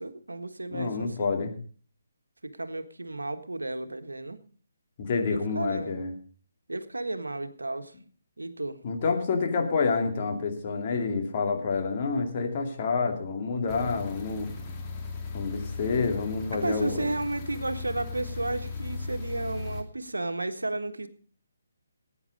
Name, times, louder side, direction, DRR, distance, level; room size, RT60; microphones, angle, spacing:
voice 1, 0.0-1.3 2.4-4.4 5.3-6.0 6.7-7.9 8.4-8.8 16.6-21.1, right 2 dB, 80° right, 9 dB, 1.5 m, -33 dB
voice 2, 0.7-1.5 5.0-6.1 8.8-14.5 15.3-17.1, left 4 dB, 35° left, 3 dB, 2.7 m, -28 dB
sound 1, 13.7-19.8, left 4 dB, 20° left, 2.5 m, -37 dB
17.0 x 9.4 x 5.2 m, 0.43 s
figure-of-eight pair, 140°, 0 cm